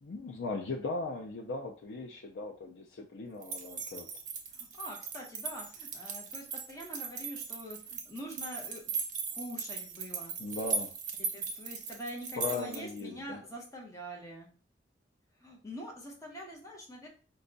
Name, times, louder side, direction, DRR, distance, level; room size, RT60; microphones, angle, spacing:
voice 1, 0.0-4.1 10.4-10.9 12.4-13.4, left 3 dB, 85° left, 2 dB, 0.5 m, -38 dB
sound 1, 3.4-13.0, right 5 dB, 45° right, 0.8 m, -38 dB
voice 2, 4.5-8.8 9.3-10.3 11.3-14.5 15.4-17.1, equal, 20° left, -1 dB, 0.9 m, -44 dB
5.2 x 2.3 x 3.9 m, 0.39 s
head